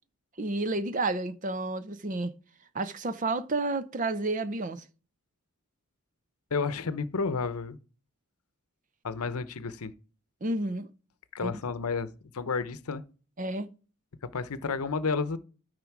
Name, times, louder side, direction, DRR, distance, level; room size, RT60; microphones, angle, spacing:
voice 1, 0.4-2.3 2.7-4.8 10.4-10.9 11.4-11.6 13.4-13.7, right 2 dB, 35° right, 0.6 m, -30 dB
voice 2, 6.5-7.8 9.0-9.9 11.3-13.0 14.3-15.4, left 4 dB, 80° left, 0.7 m, -31 dB
13.0 x 5.1 x 4.7 m
head